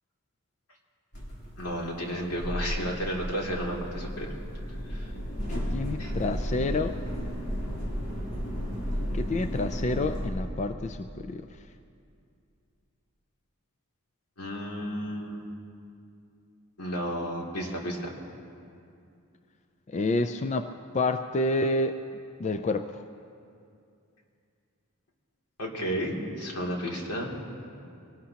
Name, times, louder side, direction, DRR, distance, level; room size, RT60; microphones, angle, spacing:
sound 1, 1.1-10.3, equal, 50° left, 3.3 m, -33 dB
voice 1, 1.6-4.3 4.9-5.1 6.0-6.1 14.4-15.5 16.8-18.1 25.6-27.3, equal, 90° left, -2 dB, 2.7 m, -32 dB
voice 2, 5.5-6.9 9.1-11.5 19.9-22.0 22.4-23.0, left 2 dB, 30° left, 9 dB, 0.4 m, -29 dB
24.0 x 18.5 x 2.9 m, 2.5 s
head